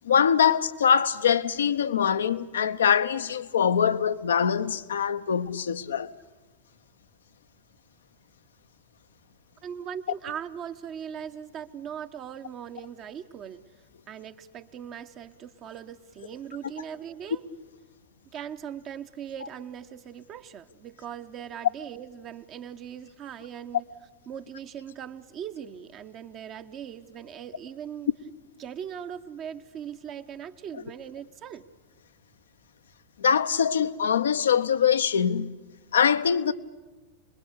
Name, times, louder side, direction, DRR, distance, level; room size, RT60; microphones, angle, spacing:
voice 1, 0.0-6.1 33.2-35.5 35.9-36.5, left 7 dB, 65° left, 0.8 m, -23 dB
voice 2, 9.6-13.6 14.1-17.4 18.3-23.9 24.3-28.1 28.6-31.6, right 8 dB, 35° right, 0.9 m, -40 dB
27.0 x 21.5 x 8.3 m
figure-of-eight pair, 90°, 0 cm